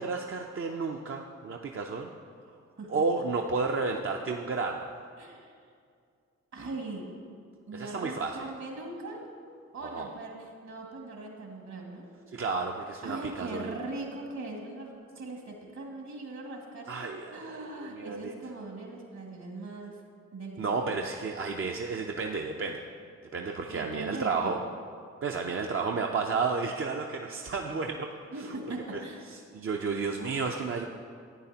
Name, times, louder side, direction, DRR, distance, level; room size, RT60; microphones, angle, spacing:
voice 1, 0.0-2.1 2.9-4.9 7.7-8.4 9.8-10.1 12.3-13.7 16.9-18.3 20.6-22.8 23.3-24.6 25.2-28.1 29.5-30.9, right 4 dB, 45° right, 2 dB, 0.6 m, -32 dB
voice 2, 5.2-5.6 6.5-7.1 7.7-9.3 9.7-12.1 13.0-20.0 20.3-20.8 23.7-24.7 28.3-29.3, right 2 dB, 65° right, 0 dB, 2.1 m, -40 dB
11.0 x 8.8 x 2.9 m, 2.3 s
supercardioid pair, 50°, 30 cm